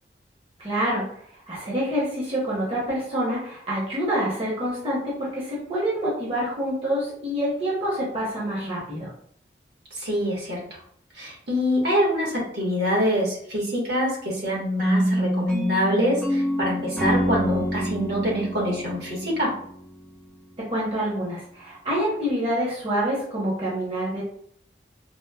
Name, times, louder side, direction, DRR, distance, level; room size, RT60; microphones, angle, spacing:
voice 1, 0.6-1.1 1.3-9.1 20.6-24.2, equal, 30° right, -6 dB, 0.8 m, -27 dB
voice 2, 9.9-10.8 11.2-19.5, equal, 70° right, -4 dB, 1.2 m, -25 dB
sound 1, 14.8-19.9, equal, 5° left, 0.6 m, -26 dB
4.2 x 2.0 x 2.2 m, 0.64 s
head